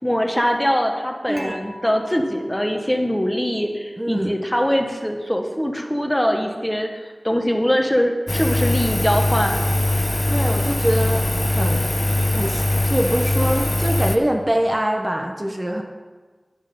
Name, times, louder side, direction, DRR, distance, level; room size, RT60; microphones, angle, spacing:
voice 1, 0.0-6.9 7.2-9.6, equal, 10° left, 3 dB, 1.1 m, -22 dB
voice 2, 1.3-1.6 4.0-4.3 10.3-11.9 12.3-15.8, equal, 25° right, 2 dB, 0.8 m, -24 dB
Dishes pots and pans / Chink clink, 1.4-3.5, equal, 40° right, 1.1 m, -43 dB
Engine, 8.3-14.2, left 1 dB, 25° left, 0.7 m, -21 dB
9.8 x 6.3 x 5.2 m, 1.4 s
wide cardioid pair, 50°, 0 cm